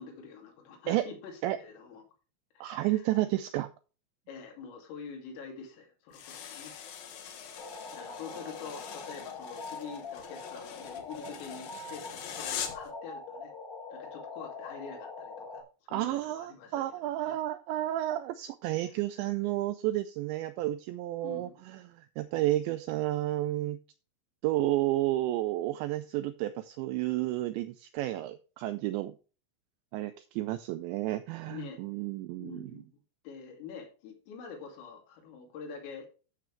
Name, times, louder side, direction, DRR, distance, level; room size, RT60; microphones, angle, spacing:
voice 1, 0.0-2.0 2.6-3.1 4.3-6.8 7.5-13.5 13.9-15.6 15.9-17.4 21.2-21.6 31.5-31.8 32.4-36.1, left 6 dB, 85° left, 2 dB, 5.2 m, -46 dB
voice 2, 2.6-3.7 15.9-21.5 21.9-23.8 24.4-29.2 29.9-32.7, right 15 dB, 85° right, 11 dB, 2.5 m, -31 dB
sound 1, 6.1-12.9, left 8 dB, 65° left, 2.5 m, -43 dB
sound 2, 7.6-15.6, left 3 dB, 30° left, 1.8 m, -43 dB
12.5 x 6.9 x 3.2 m, 0.34 s
omnidirectional pair, 5.7 m